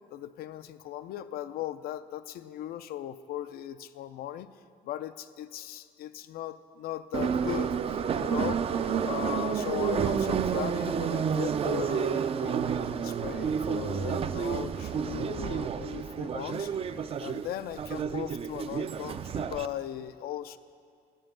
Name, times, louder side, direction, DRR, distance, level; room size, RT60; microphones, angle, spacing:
voice 1, 0.1-4.5 4.8-8.7 9.0-16.7 17.2-20.6, left 12 dB, 65° left, 13 dB, 0.4 m, -38 dB
Subway metro underground, 7.1-19.7, right 7 dB, 35° right, 0.4 m, -30 dB
8.8 x 5.5 x 7.2 m, 2.2 s
cardioid pair, 110°, 17 cm